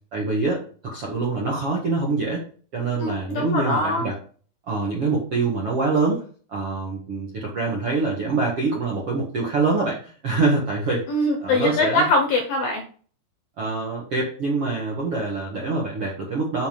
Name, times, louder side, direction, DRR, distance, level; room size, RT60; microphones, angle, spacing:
voice 1, 0.1-2.4 2.7-4.2 4.7-6.2 6.5-11.1 11.4-12.1 13.6-16.7, right 3 dB, 55° right, -3 dB, 1.5 m, -25 dB
voice 2, 3.0-4.1 11.1-12.9, left 2 dB, 70° left, 3 dB, 2.3 m, -22 dB
7.5 x 6.7 x 5.3 m, 0.43 s
omnidirectional pair, 5.8 m